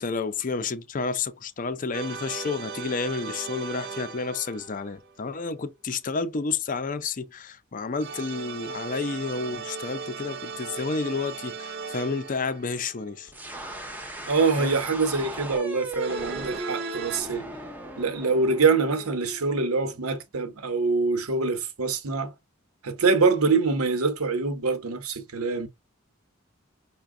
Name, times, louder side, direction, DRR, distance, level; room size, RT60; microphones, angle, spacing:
voice 1, 0.0-13.3 14.6-14.8, left 4 dB, 40° left, 0.5 m, -30 dB
sound 1, 1.9-5.3 8.0-13.4 16.0-17.2, right 5 dB, 50° right, 0.6 m, -38 dB
sound 2, 13.3-20.1, right 1 dB, 10° right, 0.6 m, -37 dB
voice 2, 14.3-17.5 18.0-22.3 22.8-25.7, right 4 dB, 90° right, 0.9 m, -24 dB
5.7 x 2.2 x 3.6 m
head